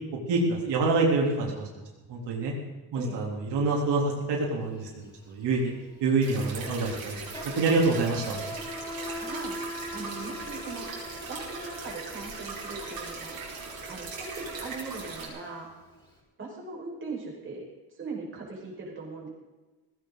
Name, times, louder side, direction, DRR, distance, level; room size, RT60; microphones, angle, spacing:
voice 1, 0.3-1.7 2.1-2.5 2.9-5.7 6.0-7.2 7.4-8.4, right 3 dB, 90° right, -1 dB, 3.6 m, -26 dB
Insect, 4.6-4.8 5.1-16.1, left 1 dB, 10° left, 4.8 m, -42 dB
sound 1, 6.2-15.3, right 4 dB, 55° right, 5.2 m, -40 dB
voice 2, 9.2-9.5 9.9-10.9 11.3-13.4 13.9-15.7 16.4-17.6 17.9-19.3, right 4 dB, 30° right, -3 dB, 5.3 m, -39 dB
18.0 x 16.0 x 4.0 m, 1.2 s
cardioid pair, 165°, 40 cm